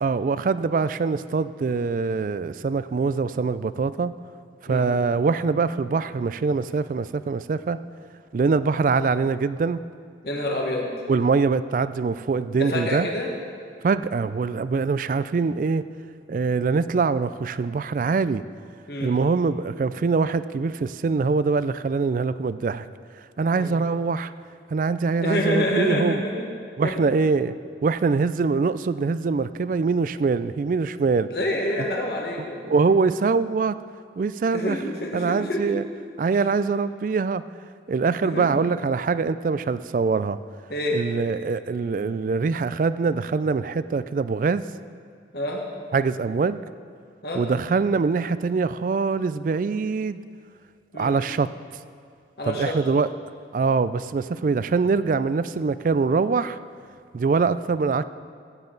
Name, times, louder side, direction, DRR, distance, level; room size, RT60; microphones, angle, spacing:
voice 1, 0.0-4.1 4.6-7.8 8.3-9.8 11.1-13.1 13.8-15.8 16.3-18.4 19.0-22.9 23.4-24.3 24.7-26.2 26.8-27.5 27.8-31.3 32.7-33.8 34.2-34.8 35.1-35.8 36.2-37.4 37.9-40.4 40.9-44.6 45.9-46.6 47.3-50.2 51.0-51.5 52.5-53.1 53.5-56.6 57.1-58.0, right 4 dB, 50° right, 15 dB, 0.3 m, -23 dB
voice 2, 10.2-10.9 12.5-13.3 18.9-19.1 23.5-23.7 25.2-26.5 26.8-27.0 31.3-32.6 34.5-35.6 38.2-38.5 40.7-41.0 45.3-45.6 47.2-47.4 50.9-51.1 52.4-52.8, left 1 dB, 65° left, -1 dB, 1.5 m, -27 dB
14.5 x 9.1 x 3.9 m, 2.3 s
head